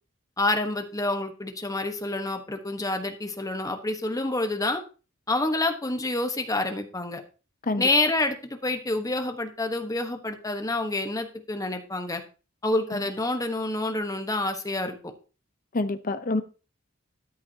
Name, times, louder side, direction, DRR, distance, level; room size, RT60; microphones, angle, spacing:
voice 1, 0.4-4.8 5.3-7.2 7.8-12.2 12.6-15.1, left 2 dB, 15° left, 6 dB, 1.1 m, -28 dB
voice 2, 15.7-16.4, left 2 dB, 40° left, 11 dB, 0.8 m, -27 dB
13.0 x 10.5 x 2.8 m, 0.34 s
head